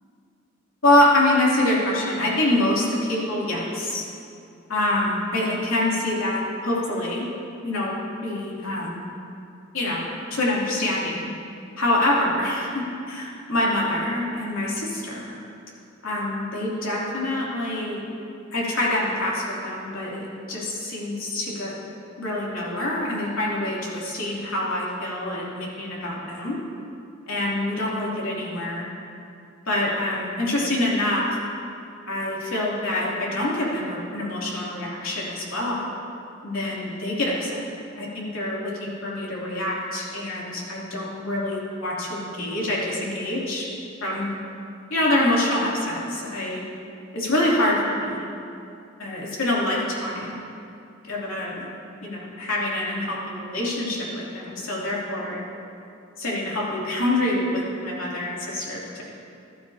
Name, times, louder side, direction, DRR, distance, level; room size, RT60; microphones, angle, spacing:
voice 1, 0.8-4.0 4.7-7.2 7.6-8.0 8.2-9.0 9.7-10.0 10.3-11.3 11.8-15.4 16.0-18.0 18.5-21.7 22.2-26.6 27.3-28.8 29.7-31.2 32.1-35.9 36.4-37.6 38.0-43.6 44.0-44.3 44.9-46.6 47.1-48.3 49.0-50.4 51.1-51.7 52.0-55.4 56.2-59.0, left 1 dB, 80° left, -5 dB, 3.0 m, -25 dB
14.5 x 12.5 x 2.9 m, 2.6 s
head